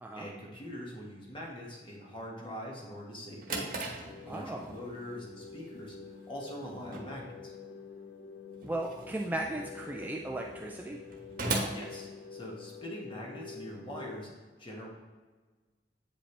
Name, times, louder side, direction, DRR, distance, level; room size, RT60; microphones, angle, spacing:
voice 1, 0.1-3.8 4.2-6.0 6.3-7.5 11.7-14.3 14.6-14.9, equal, 30° left, -2 dB, 1.5 m, -43 dB
Drawer open or close, 3.1-12.8, right 2 dB, 50° right, 1.1 m, -41 dB
sound 1, 4.0-14.3, left 6 dB, 65° left, 0.5 m, -48 dB
voice 2, 4.3-4.7 8.6-11.0, right 1 dB, 10° right, 0 dB, 0.4 m, -36 dB
8.5 x 5.2 x 3.3 m, 1.4 s
head